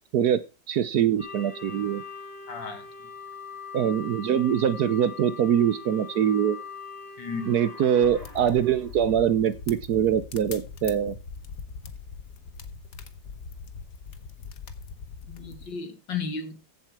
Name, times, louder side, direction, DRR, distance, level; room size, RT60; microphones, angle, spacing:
voice 1, 0.7-2.0 3.7-6.6 7.5-11.2, right 9 dB, 65° right, 1.2 m, -23 dB
sound 1, 1.2-9.2, left 5 dB, 30° right, 5.4 m, -42 dB
voice 2, 2.5-2.8 7.2-7.5 15.3-16.7, left 5 dB, 75° left, 2.7 m, -34 dB
sound 2, 8.0-15.7, left 5 dB, 55° left, 1.4 m, -42 dB
15.0 x 7.5 x 4.6 m
omnidirectional pair, 2.0 m